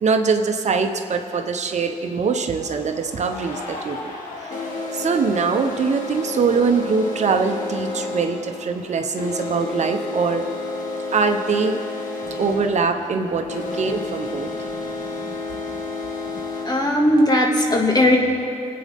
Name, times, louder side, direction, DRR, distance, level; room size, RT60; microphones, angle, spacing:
voice 1, 0.0-4.1 4.4-4.6 4.9-10.5 11.1-11.8 12.4-14.5, right 5 dB, 55° right, 5 dB, 0.9 m, -22 dB
sound 1, 1.2-1.3 2.2-17.3, left 2 dB, 75° left, 2.1 m, -31 dB
voice 2, 16.6-18.2, left 1 dB, 30° left, 0 dB, 2.2 m, -18 dB
23.0 x 8.6 x 3.6 m, 2.8 s
cardioid pair, 75°, 14 cm